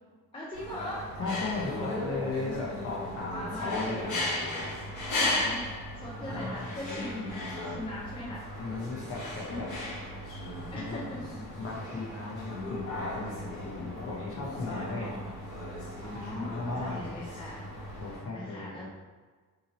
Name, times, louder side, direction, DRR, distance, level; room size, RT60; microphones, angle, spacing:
voice 1, 0.3-1.1 1.7-2.4 3.2-4.0 5.3-5.7 6.0-8.4 10.7-11.2 14.7-15.3 16.0-17.7 18.3-18.9, left 1 dB, 15° left, -5 dB, 0.4 m, -40 dB
sound 1, 0.5-18.2, left 1 dB, 60° left, 1.2 m, -36 dB
voice 2, 1.2-4.1 6.0-6.7 8.5-9.7 10.7-11.0 11.6-15.1 16.1-17.1 18.0-18.9, left 3 dB, 40° left, -3 dB, 0.8 m, -37 dB
2.9 x 2.6 x 4.1 m, 1.5 s
cardioid pair, 175°, 34 cm